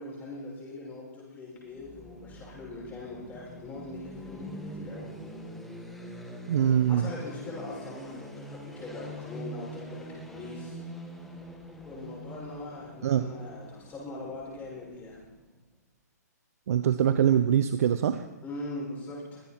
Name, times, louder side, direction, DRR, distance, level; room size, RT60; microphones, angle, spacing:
voice 1, 0.0-5.2 6.9-10.8 11.8-15.2 18.4-19.4, left 2 dB, 15° left, -4 dB, 6.6 m, -41 dB
sound 1, 1.6-15.5, equal, ahead, 2.0 m, -44 dB
voice 2, 6.5-7.1 13.0-13.2 16.7-18.2, right 9 dB, 55° right, 11 dB, 0.7 m, -23 dB
23.5 x 9.0 x 4.5 m, 1.1 s
hypercardioid pair, 135°, 9 cm